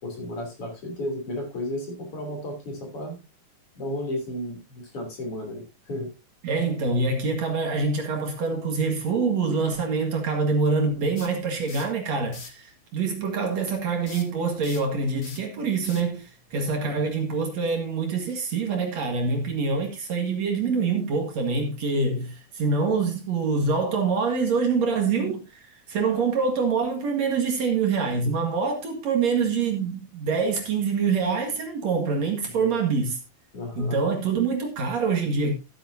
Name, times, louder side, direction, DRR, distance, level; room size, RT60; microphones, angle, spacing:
voice 1, 0.0-3.2 3.8-6.1 16.8-17.0 32.5-32.8 33.5-34.0, left 1 dB, 45° left, 3.9 m, -33 dB
voice 2, 6.4-33.1 33.8-35.5, right 4 dB, 55° right, 2.8 m, -25 dB
sound 1, 11.2-12.0 12.3-12.6 14.1-17.1, left 4 dB, 80° left, 0.5 m, -44 dB
14.5 x 8.6 x 2.7 m
omnidirectional pair, 3.8 m